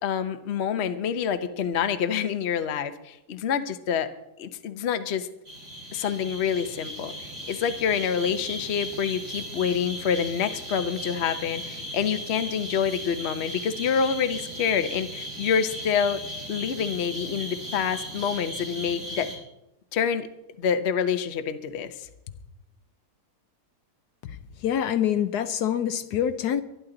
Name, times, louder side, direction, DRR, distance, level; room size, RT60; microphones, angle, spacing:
voice 1, 0.0-4.1 4.4-5.3 5.9-16.2 16.5-19.3 19.9-20.3 20.6-22.1, left 7 dB, 50° left, 10 dB, 1.0 m, -27 dB
sound 1, 5.4-19.3, equal, 75° right, 6.5 m, -37 dB
voice 2, 24.6-26.6, left 9 dB, 75° left, 11 dB, 1.3 m, -25 dB
23.5 x 10.5 x 3.9 m, 0.88 s
omnidirectional pair, 1.8 m